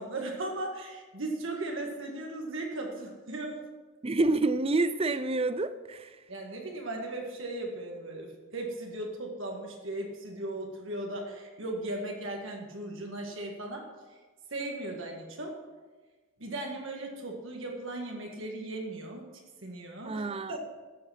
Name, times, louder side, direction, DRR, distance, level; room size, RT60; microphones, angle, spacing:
voice 1, 0.0-3.6 6.3-13.9 14.5-15.6 16.4-19.3 19.6-20.2 20.5-20.6, right 2 dB, 60° right, 1.8 m, -37 dB
voice 2, 4.0-6.1 20.0-20.6, right 2 dB, 25° right, 0.5 m, -28 dB
13.0 x 7.9 x 5.8 m
head